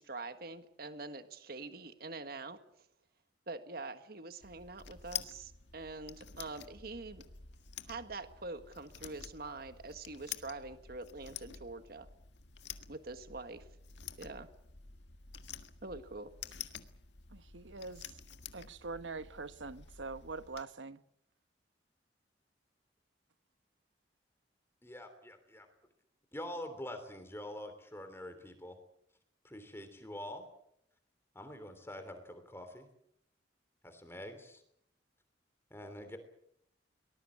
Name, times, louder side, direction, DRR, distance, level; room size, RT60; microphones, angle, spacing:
voice 1, 0.0-2.6 3.5-7.2 7.9-12.1 12.9-13.6 14.2-14.5 15.8-16.3, right 3 dB, 55° right, 9 dB, 1.6 m, -45 dB
sound 1, 4.4-20.6, left 9 dB, 70° left, 1.7 m, -49 dB
voice 2, 17.5-18.0 18.5-21.0, right 3 dB, 90° right, 13 dB, 1.2 m, -43 dB
voice 3, 24.8-25.7 26.3-28.8 29.4-30.5 31.3-32.9 33.8-34.6 35.7-36.2, left 1 dB, 15° left, 8 dB, 3.1 m, -45 dB
23.5 x 20.0 x 8.5 m, 0.74 s
head